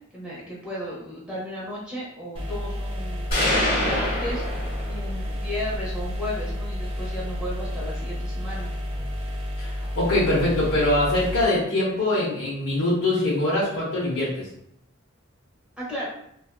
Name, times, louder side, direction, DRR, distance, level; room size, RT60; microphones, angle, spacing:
voice 1, 0.1-8.7 15.8-16.1, equal, 5° right, -7 dB, 0.8 m, -35 dB
sound 1, 2.4-11.4, equal, 25° right, 0.4 m, -31 dB
sound 2, 3.3-5.3, left 1 dB, 45° left, 1.2 m, -25 dB
voice 2, 9.6-14.5, left 1 dB, 75° left, -7 dB, 0.6 m, -23 dB
2.6 x 2.3 x 2.3 m, 0.73 s
head